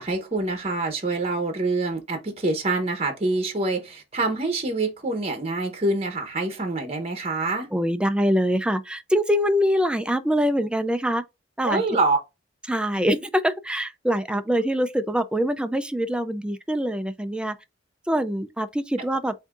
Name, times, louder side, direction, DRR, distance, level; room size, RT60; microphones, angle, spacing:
voice 1, 0.0-7.7 11.6-12.2, right 2 dB, 30° right, 0.9 m, -26 dB
voice 2, 7.7-11.2 11.6-11.8 12.7-17.6 18.1-19.3, equal, 5° right, 0.4 m, -24 dB
8.1 x 2.7 x 2.4 m
head